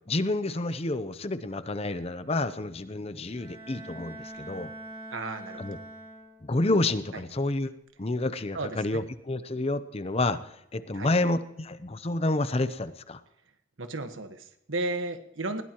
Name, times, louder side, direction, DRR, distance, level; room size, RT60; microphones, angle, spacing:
voice 1, 0.1-4.7 5.6-5.8 6.4-7.7 8.0-13.2, left 2 dB, 30° left, 13 dB, 0.7 m, -29 dB
Bowed string instrument, 3.3-6.7, right 1 dB, 15° right, 4.7 m, -44 dB
voice 2, 5.1-5.8 7.1-7.2 8.5-9.0 10.9-11.1 13.8-15.6, right 2 dB, 85° right, 8 dB, 1.4 m, -34 dB
20.5 x 17.0 x 3.0 m, 0.82 s
head